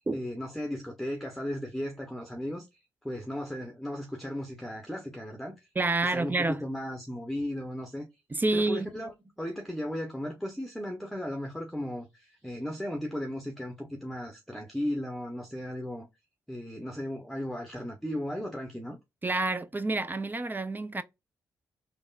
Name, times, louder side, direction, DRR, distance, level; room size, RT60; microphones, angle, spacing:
voice 1, 0.1-2.7 3.0-5.7 6.0-8.1 8.5-16.1 16.5-19.0, left 1 dB, ahead, 0.9 m, -36 dB
voice 2, 5.8-6.6 8.3-8.9 19.2-21.0, right 2 dB, 20° right, 0.5 m, -28 dB
3.4 x 2.2 x 2.3 m
hypercardioid pair, 40°, 9 cm